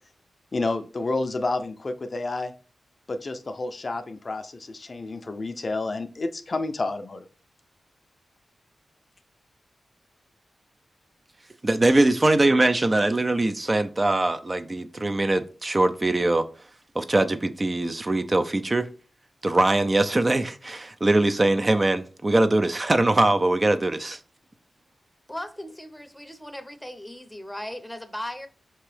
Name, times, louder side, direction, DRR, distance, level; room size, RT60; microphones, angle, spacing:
voice 1, 0.5-2.5 3.1-7.3, left 2 dB, 50° left, 0.4 m, -30 dB
voice 2, 11.6-16.4 17.0-18.9 19.4-24.2, right 2 dB, 35° right, 0.4 m, -22 dB
voice 3, 25.3-28.5, left 1 dB, 10° left, 0.6 m, -37 dB
4.4 x 2.9 x 3.2 m
cardioid pair, 45°, 0 cm